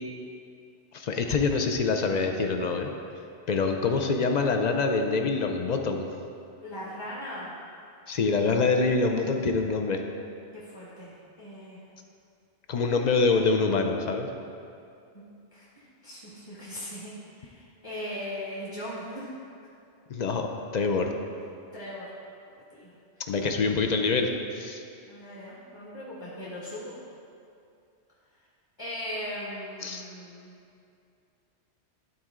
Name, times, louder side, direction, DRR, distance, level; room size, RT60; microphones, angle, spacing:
voice 1, 0.9-2.9 3.5-6.1 8.1-10.0 12.7-14.3 20.1-20.5 20.7-21.1 23.3-24.8 29.8-30.0, left 4 dB, 55° left, 4 dB, 0.5 m, -25 dB
voice 2, 6.6-7.6 10.5-11.8 15.1-15.2 15.5-19.3 21.7-22.1 22.7-22.9 23.2-23.3 25.1-27.0 28.8-30.5, left 1 dB, 25° left, -8 dB, 1.4 m, -39 dB
12.0 x 4.4 x 3.7 m, 2.5 s
omnidirectional pair, 1.2 m